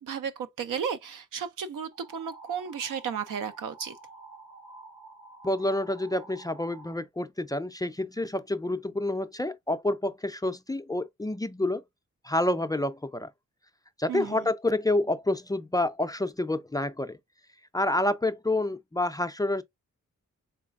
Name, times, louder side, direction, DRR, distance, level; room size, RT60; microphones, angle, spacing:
voice 1, 0.0-4.0 14.1-14.4, right 7 dB, 90° right, 0.5 m, -34 dB
sound 1, 1.9-6.9, right 3 dB, 65° right, 1.1 m, -49 dB
voice 2, 5.4-11.8 12.2-13.3 14.0-17.2 17.7-19.6, left 1 dB, 15° left, 0.3 m, -28 dB
4.0 x 3.2 x 2.4 m
cardioid pair, 85°, 31 cm